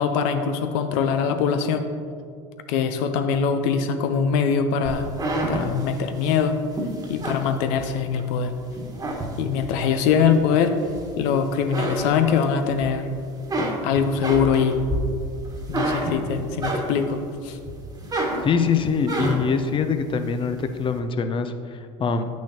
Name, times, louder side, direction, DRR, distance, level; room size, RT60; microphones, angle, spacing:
voice 1, 0.0-1.9 2.7-5.1 5.5-6.6 7.1-8.5 9.4-10.7 11.2-13.1 13.8-14.8 15.7-17.6, left 6 dB, 75° left, 8 dB, 0.6 m, -22 dB
sound 1, 4.8-8.3 8.7-9.8 10.3-11.3 11.6-12.9 13.2-17.2 17.6-19.6, right 1 dB, 25° right, 1.4 m, -29 dB
voice 2, 18.4-22.3, left 5 dB, 35° left, 9 dB, 0.6 m, -24 dB
8.4 x 6.2 x 2.9 m, 2.3 s
hypercardioid pair, 85°, 16 cm